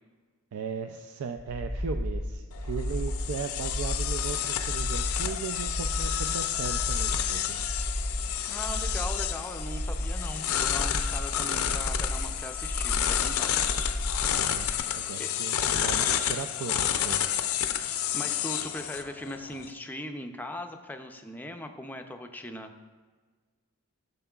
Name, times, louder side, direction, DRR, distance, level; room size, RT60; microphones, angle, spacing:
voice 1, 0.5-7.7 14.3-17.2, right 6 dB, 80° right, 6 dB, 0.4 m, -37 dB
sound 1, 1.4-14.8, left 1 dB, 30° right, 0.7 m, -33 dB
sound 2, 2.5-19.7, left 10 dB, 75° left, 0.5 m, -30 dB
voice 2, 8.5-13.5 15.2-15.3 17.8-22.7, left 1 dB, 10° left, 5 dB, 0.4 m, -39 dB
12.5 x 6.6 x 2.3 m, 1.4 s
head